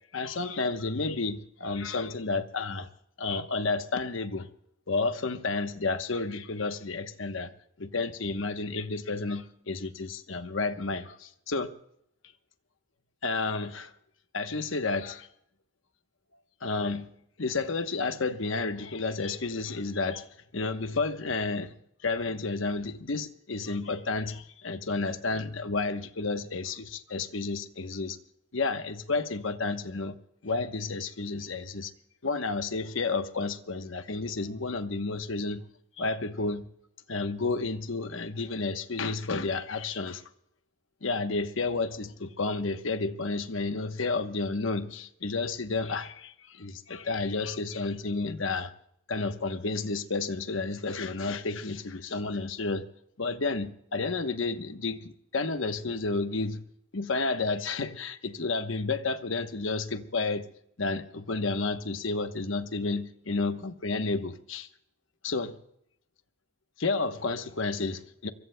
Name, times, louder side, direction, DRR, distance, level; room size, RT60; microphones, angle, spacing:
voice 1, 0.1-2.9 3.2-4.5 4.9-7.5 7.8-11.7 13.2-13.9 14.3-15.3 16.6-17.1 17.4-20.3 20.5-21.7 22.0-28.2 28.5-30.1 30.4-31.9 32.2-35.6 36.0-36.7 37.1-40.2 41.0-48.7 49.1-52.8 53.2-56.6 56.9-60.4 60.8-64.7 65.2-65.6 66.8-68.3, left 3 dB, 75° left, 1.0 m, -31 dB
25.0 x 22.5 x 2.2 m
head